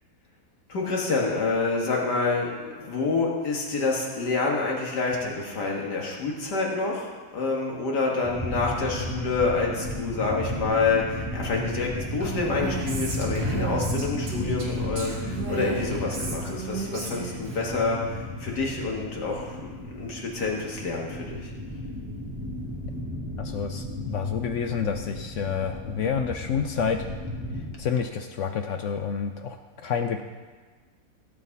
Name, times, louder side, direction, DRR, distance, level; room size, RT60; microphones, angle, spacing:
voice 1, 0.7-21.5, left 3 dB, 85° left, -1 dB, 2.3 m, -28 dB
sound 1, 8.2-27.8, left 1 dB, 10° right, 1.6 m, -34 dB
Female speech woman speaking, 12.2-17.6, right 4 dB, 75° right, 2.3 m, -34 dB
voice 2, 23.4-27.0 27.8-30.2, left 7 dB, 65° left, 7 dB, 0.8 m, -29 dB
16.0 x 7.8 x 4.1 m, 1.4 s
omnidirectional pair, 1.7 m